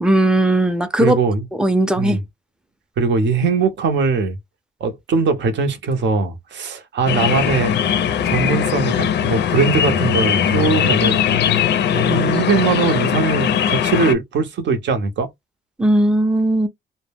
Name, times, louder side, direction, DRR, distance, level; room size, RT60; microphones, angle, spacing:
voice 1, 0.0-1.2 1.6-2.2 15.8-16.7, right 1 dB, 5° right, 0.5 m, -17 dB
voice 2, 1.0-1.4 2.0-2.2 3.0-4.4 4.8-7.8 8.2-11.2 11.9-15.3, right 4 dB, 65° right, 0.8 m, -20 dB
sound 1, 7.1-14.1, left 8 dB, 60° left, 0.4 m, -19 dB
2.1 x 2.1 x 3.3 m
cardioid pair, 90°, 20 cm